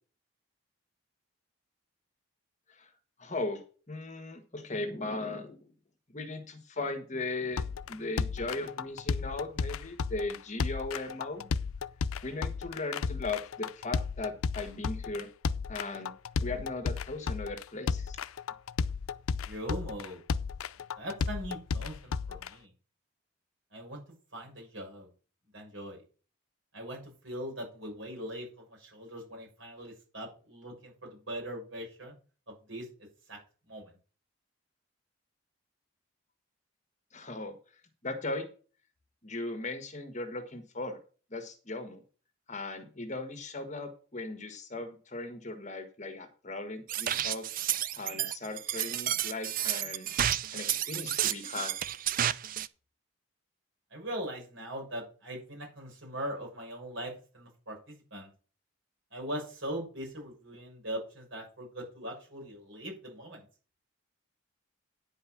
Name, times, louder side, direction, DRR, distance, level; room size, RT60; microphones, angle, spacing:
voice 1, 3.2-5.6 6.1-11.4 12.2-15.3 15.7-16.1 16.4-18.2 37.1-37.5 38.0-38.5 39.2-41.0 41.3-42.0 42.5-47.5 48.0-50.1 50.5-51.7, left 2 dB, 35° left, 6 dB, 1.5 m, -38 dB
sound 1, 7.6-22.5, left 5 dB, 85° left, 0.5 m, -33 dB
voice 2, 19.4-20.2 21.0-22.7 23.7-24.0 24.3-25.1 25.5-26.0 26.7-32.1 32.5-32.9 33.3-33.4 33.7-33.9 53.9-58.3 59.1-63.4, equal, 65° right, 0 dB, 6.6 m, -40 dB
sound 2, 46.9-52.7, right 11 dB, 40° right, 0.4 m, -31 dB
10.0 x 5.4 x 7.3 m, 0.37 s
head